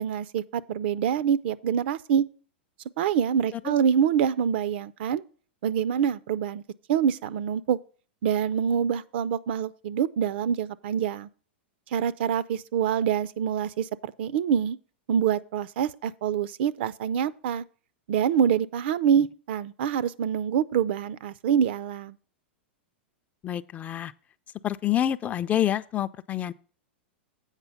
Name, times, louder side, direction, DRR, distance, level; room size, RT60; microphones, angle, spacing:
voice 1, 0.0-2.3 3.0-5.2 5.6-6.6 6.9-7.8 8.2-11.3 11.9-14.8 15.1-17.6 18.1-22.2, right 8 dB, 65° right, 0.5 m, -25 dB
voice 2, 23.4-24.1 24.6-26.5, left 11 dB, 25° left, 0.4 m, -27 dB
8.1 x 5.1 x 5.6 m
hypercardioid pair, 125°, 6 cm